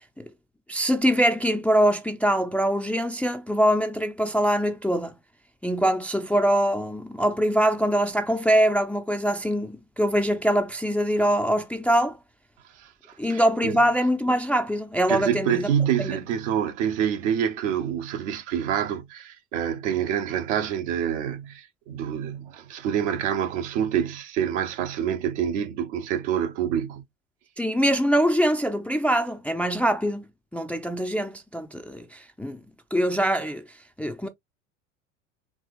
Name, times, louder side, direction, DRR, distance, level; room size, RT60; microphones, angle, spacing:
voice 1, 0.7-5.2 5.6-12.2 13.2-15.7 16.0-16.1 27.6-30.2 30.5-32.6 32.9-33.6 34.0-34.3, equal, 5° left, 0.4 m, -23 dB
voice 2, 12.8-13.8 15.1-27.0, right 9 dB, 70° right, 1.0 m, -27 dB
4.7 x 2.9 x 2.4 m
hypercardioid pair, 80°, 37 cm